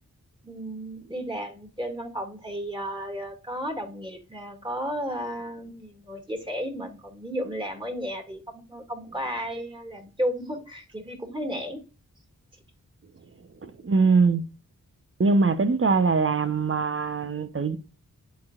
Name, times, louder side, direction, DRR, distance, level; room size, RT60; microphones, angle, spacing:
voice 1, 0.4-11.8, equal, 15° right, 2.5 m, -33 dB
voice 2, 13.6-14.4 15.2-17.8, right 4 dB, 40° right, 1.0 m, -22 dB
11.5 x 4.1 x 2.5 m
cardioid pair, 40°, 35 cm